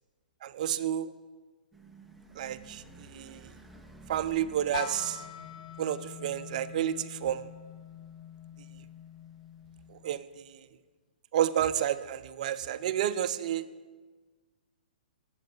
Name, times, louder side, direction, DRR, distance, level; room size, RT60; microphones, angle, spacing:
voice 1, 0.4-1.1 2.4-3.6 4.1-5.2 5.8-7.5 9.9-10.7 11.3-13.7, right 11 dB, 50° right, 13 dB, 0.5 m, -31 dB
sound 1, 1.7-10.0, right 2 dB, ahead, 0.7 m, -55 dB
sound 2, 4.7-10.5, left 9 dB, 55° left, 0.6 m, -44 dB
7.8 x 7.4 x 7.8 m, 1.4 s
hypercardioid pair, 120°, 5 cm